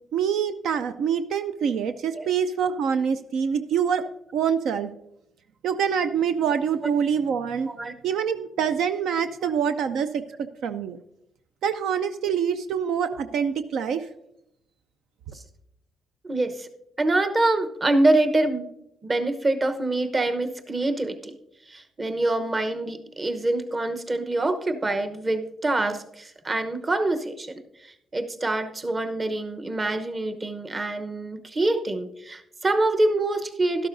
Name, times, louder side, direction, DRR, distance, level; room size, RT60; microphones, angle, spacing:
voice 1, 0.1-4.1 4.3-4.9 5.6-7.7 8.0-11.0 11.6-14.1, right 7 dB, 80° right, 10 dB, 0.4 m, -25 dB
voice 2, 16.2-16.7 17.0-18.7 19.0-21.4 21.7-33.9, right 2 dB, 30° right, 8 dB, 0.9 m, -25 dB
12.0 x 12.0 x 2.6 m, 0.81 s
cardioid pair, 90°, 0 cm